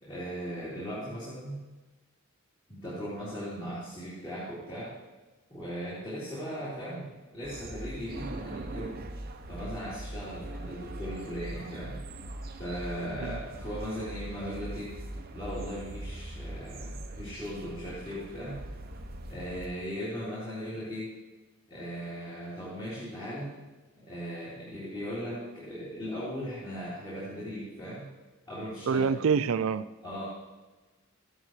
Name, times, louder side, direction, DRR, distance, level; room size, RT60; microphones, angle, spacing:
voice 1, 0.0-1.6 2.7-4.9 5.5-9.0 9.5-12.0 12.5-14.9 15.3-18.6 19.3-21.1 21.7-23.5 24.0-28.1 28.5-29.1 30.0-30.2, equal, 25° left, -11 dB, 3.6 m, -38 dB
sound 1, 7.4-19.7, right 1 dB, 45° right, 0.8 m, -41 dB
voice 2, 28.9-29.8, right 6 dB, 75° right, 14 dB, 0.4 m, -26 dB
14.5 x 11.5 x 3.2 m, 1.2 s
head